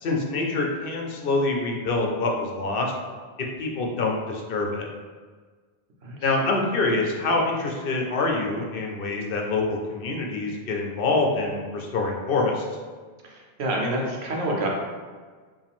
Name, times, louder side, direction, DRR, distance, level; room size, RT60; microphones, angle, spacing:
voice 1, 0.0-2.9 3.6-4.9 6.2-12.7, left 3 dB, 65° left, 1 dB, 0.8 m, -25 dB
voice 2, 13.2-14.7, right 1 dB, 85° right, -1 dB, 1.1 m, -27 dB
4.8 x 2.6 x 3.5 m, 1.5 s
omnidirectional pair, 1.1 m